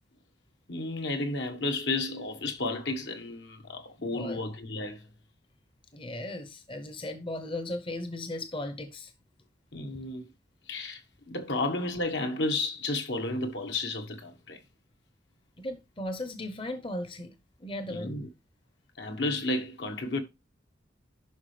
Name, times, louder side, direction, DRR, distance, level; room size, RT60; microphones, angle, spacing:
voice 1, 0.7-5.0 9.7-10.3 10.7-11.0 11.3-14.6 17.9-18.3 19.0-20.2, left 2 dB, 70° left, 1.3 m, -32 dB
voice 2, 4.0-4.4 5.9-9.1 15.6-18.1, left 1 dB, 30° left, 0.8 m, -37 dB
10.5 x 5.7 x 3.3 m
head